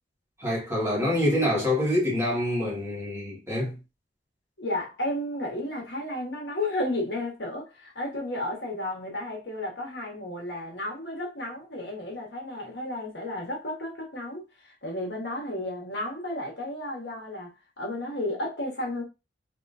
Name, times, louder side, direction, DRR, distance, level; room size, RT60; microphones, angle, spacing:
voice 1, 0.4-3.8, left 1 dB, 15° right, 1.9 m, -26 dB
voice 2, 4.6-17.5 17.8-19.0, left 1 dB, 65° left, 1.5 m, -33 dB
3.4 x 3.3 x 2.7 m
head